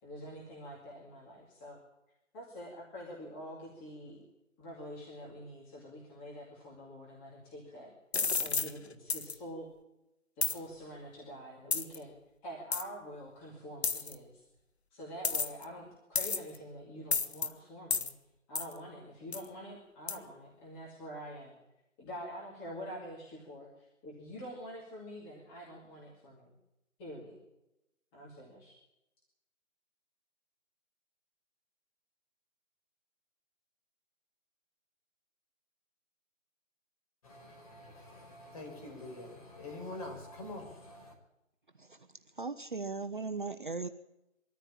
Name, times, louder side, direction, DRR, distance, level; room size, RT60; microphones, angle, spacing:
voice 1, 0.0-1.8 2.3-4.2 4.6-7.9 8.4-9.7 10.4-12.1 12.4-14.4 14.9-18.1 18.5-21.6 22.0-26.5 27.0-27.4 28.1-28.7, equal, 10° left, -4 dB, 2.3 m, -46 dB
sound 1, 8.1-8.7 9.1-9.3 10.4-10.6 11.7-12.0 12.7-12.8 13.8-14.1 15.2-15.6 16.2-16.6 17.1-17.5 17.9-18.1 18.6-18.7 19.3-19.5 20.1-20.2, left 5 dB, 55° left, 1.6 m, -31 dB
voice 2, 37.2-41.1, left 2 dB, 25° left, 2 dB, 5.0 m, -45 dB
voice 3, 42.3-43.9, right 4 dB, 40° right, 9 dB, 0.8 m, -38 dB
23.0 x 14.0 x 8.7 m, 0.90 s
figure-of-eight pair, 170°, 40 cm